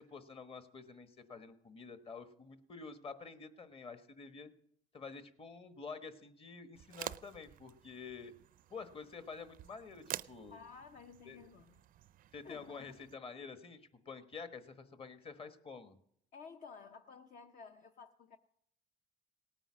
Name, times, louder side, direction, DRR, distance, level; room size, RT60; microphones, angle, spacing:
voice 1, 0.0-4.5 4.9-8.3 8.7-10.6 11.2-11.4 12.3-16.0, left 5 dB, 35° left, 9 dB, 1.3 m, -49 dB
sound 1, 6.7-13.1, right 12 dB, 55° right, 0.4 m, -49 dB
voice 2, 10.5-11.7 12.4-13.0 16.3-18.4, left 5 dB, 50° left, 6 dB, 0.8 m, -53 dB
18.0 x 9.0 x 6.2 m, 0.71 s
cardioid pair, 110°, 17 cm